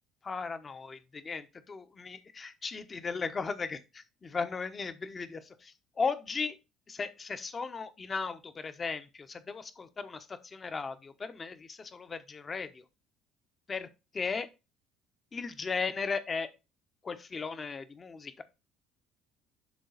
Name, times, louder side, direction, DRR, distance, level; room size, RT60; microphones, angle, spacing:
voice 1, 0.2-6.6 6.9-12.8 13.7-13.9 14.1-14.5 15.3-16.5 17.0-18.4, left 5 dB, 35° left, 1.0 m, -36 dB
10.5 x 3.9 x 4.1 m
hypercardioid pair, 70°, 0 cm